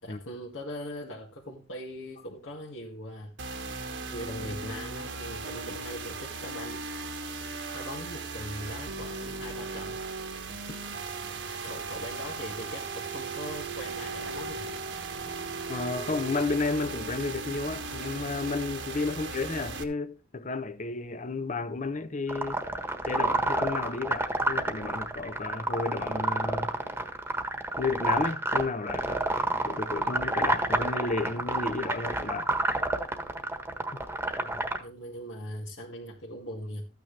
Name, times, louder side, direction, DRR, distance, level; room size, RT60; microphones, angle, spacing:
voice 1, 0.0-3.3 4.1-6.8 7.7-10.0 11.6-14.7 19.1-19.3 34.3-36.9, equal, 75° left, 2.2 m, -40 dB
sound 1, 3.4-19.8, right 3 dB, 65° right, 1.5 m, -37 dB
voice 2, 15.7-22.6 23.0-26.7 27.8-29.2 29.6-32.5 33.9-34.0, left 3 dB, 40° left, 0.9 m, -32 dB
sound 2, 22.3-34.8, right 2 dB, 10° right, 1.4 m, -29 dB
14.0 x 9.3 x 3.4 m
head